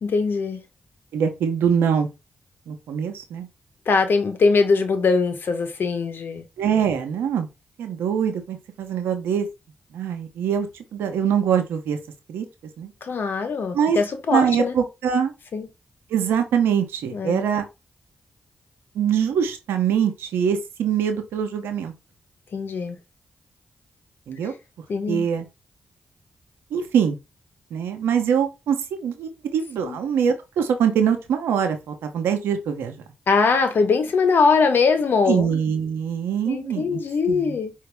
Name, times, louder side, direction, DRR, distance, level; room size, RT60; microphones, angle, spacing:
voice 1, 0.0-0.6 3.9-6.4 13.0-14.7 15.5-15.7 17.1-17.4 22.5-23.0 24.9-25.2 29.8-30.0 33.3-35.5 36.5-37.7, left 4 dB, 70° left, 1.1 m, -21 dB
voice 2, 1.1-2.1 2.7-3.5 6.6-7.5 7.8-9.5 9.9-12.0 12.3-12.5 12.8-12.9 13.7-14.0 14.3-15.3 16.1-17.6 18.9-21.9 24.3-24.5 25.1-25.4 26.7-27.2 27.7-33.0 35.3-37.0 37.3-37.6, right 8 dB, 90° right, 0.8 m, -23 dB
5.0 x 2.8 x 3.4 m
supercardioid pair, 40°, 4 cm